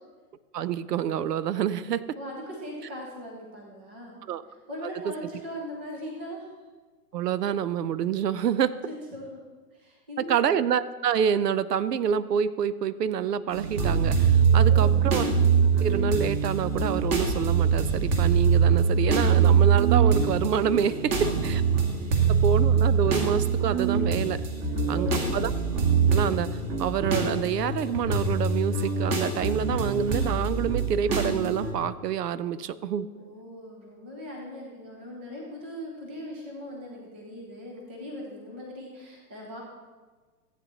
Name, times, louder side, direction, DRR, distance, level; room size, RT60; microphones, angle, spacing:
voice 1, 0.5-2.0 4.3-4.4 7.1-8.7 10.3-15.2 15.8-20.9 21.2-21.6 22.3-24.4 24.9-25.5 26.1-26.5 26.8-33.1, right 8 dB, 80° right, 16 dB, 0.6 m, -27 dB
voice 2, 2.2-4.2 4.5-6.5 8.6-9.4 9.7-10.5 14.4-15.1 21.1-21.2 21.9-22.3 24.7-25.3 33.1-39.6, equal, 10° right, -1 dB, 0.3 m, -40 dB
sound 1, 13.5-31.7, right 6 dB, 35° right, 1.8 m, -23 dB
14.5 x 8.3 x 2.9 m, 1.4 s
hypercardioid pair, 125°, 48 cm